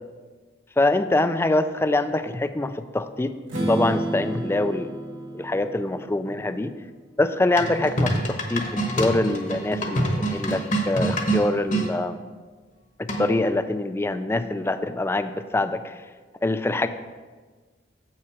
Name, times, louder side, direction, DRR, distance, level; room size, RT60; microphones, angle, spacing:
voice 1, 0.8-4.9 5.3-6.7 7.2-8.6 9.0-12.2 13.0-15.9 16.4-16.9, left 2 dB, 15° left, 11 dB, 0.3 m, -24 dB
Strum, 3.5-7.4, right 1 dB, 85° right, 1.8 m, -32 dB
sound 1, 7.6-11.9 13.1-13.5, right 1 dB, 40° left, 1.0 m, -26 dB
7.6 x 5.8 x 4.8 m, 1.4 s
head